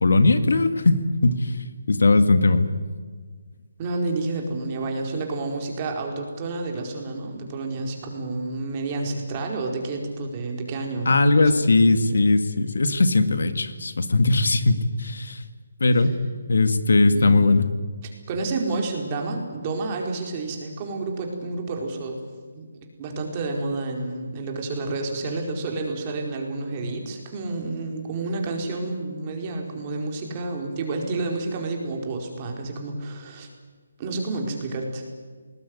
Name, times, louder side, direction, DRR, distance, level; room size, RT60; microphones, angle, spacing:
voice 1, 0.0-2.7 11.1-15.4 15.8-16.1 16.5-17.7, left 3 dB, 75° left, 10 dB, 2.2 m, -19 dB
voice 2, 3.8-11.4 17.1-17.5 18.3-22.2 22.5-22.7 23.0-33.5 34.0-35.0, right 3 dB, 25° right, 2 dB, 4.8 m, -30 dB
20.5 x 20.0 x 9.8 m, 1.5 s
hypercardioid pair, 160°, 0 cm